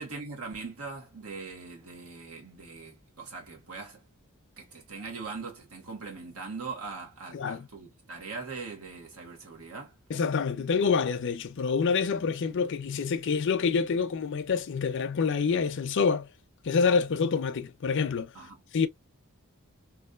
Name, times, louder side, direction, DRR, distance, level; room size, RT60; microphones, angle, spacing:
voice 1, 0.0-4.0 4.6-9.9 18.3-18.6, right 4 dB, 80° right, 1.4 m, -41 dB
voice 2, 7.3-7.7 10.1-16.3 16.6-18.3 18.7-18.9, left 5 dB, 55° left, 0.5 m, -27 dB
3.1 x 2.5 x 2.4 m
head